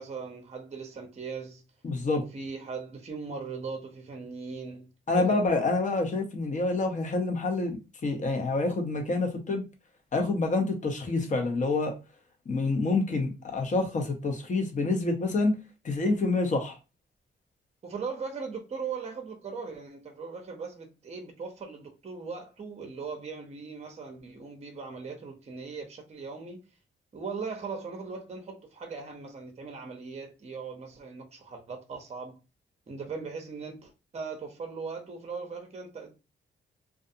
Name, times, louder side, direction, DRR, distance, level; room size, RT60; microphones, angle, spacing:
voice 1, 0.0-1.6 2.2-4.9 5.1-5.4 17.8-26.6 27.1-32.4 32.9-36.1, right 5 dB, 30° right, 0.6 m, -39 dB
voice 2, 1.8-2.2 5.1-9.6 10.1-11.9 12.5-15.5 15.8-16.8, left 3 dB, 35° left, 0.8 m, -27 dB
2.5 x 2.4 x 2.6 m
cardioid pair, 80°, 21 cm